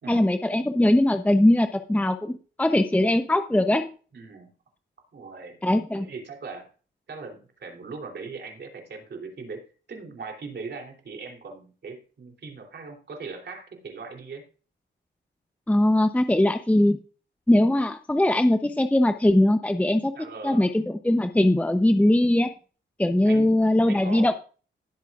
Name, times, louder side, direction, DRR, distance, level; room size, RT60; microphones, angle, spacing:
voice 1, 0.1-3.9 5.6-6.1 15.7-17.0 17.5-20.2 20.4-22.5 23.0-24.3, left 1 dB, 5° left, 8 dB, 0.7 m, -21 dB
voice 2, 4.1-4.5 5.1-5.6 5.9-6.7 7.1-9.6 9.9-14.4 20.1-20.7 23.2-23.6 23.9-24.3, right 4 dB, 60° right, 2 dB, 3.1 m, -39 dB
17.5 x 8.1 x 2.4 m, 0.38 s
cardioid pair, 90°, 20 cm